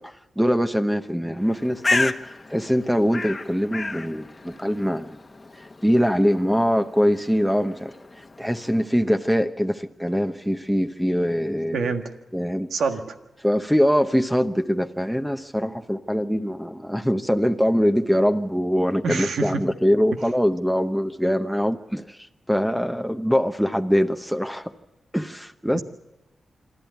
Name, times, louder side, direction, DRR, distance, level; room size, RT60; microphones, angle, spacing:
voice 1, 0.0-5.2 5.5-11.9 12.3-12.7 13.4-24.7 25.1-25.8, equal, ahead, 8 dB, 1.0 m, -23 dB
Bird, 1.4-9.0, left 3 dB, 35° left, 1.2 m, -32 dB
voice 2, 11.7-12.1 12.7-13.2 19.0-19.6 25.7-25.8, right 4 dB, 85° right, 6 dB, 1.6 m, -26 dB
27.0 x 12.0 x 9.4 m, 0.99 s
cardioid pair, 60°, 0 cm